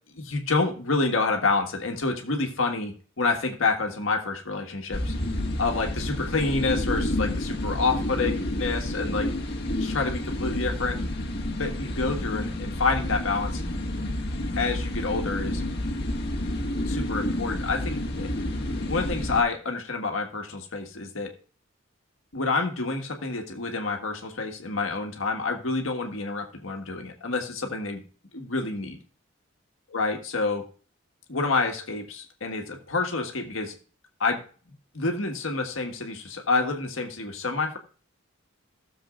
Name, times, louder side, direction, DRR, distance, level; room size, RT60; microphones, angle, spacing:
voice 1, 0.1-5.1 5.6-9.3 9.8-11.0 11.6-13.6 14.6-15.6 16.9-18.3 18.9-21.3 22.3-28.0 28.3-29.0 29.9-30.7 31.3-33.7 34.2-34.4 34.9-37.8, left 3 dB, 85° left, 4 dB, 1.6 m, -28 dB
sound 1, 4.9-19.4, left 1 dB, 50° left, 1.6 m, -29 dB
16.0 x 7.2 x 2.5 m, 0.40 s
head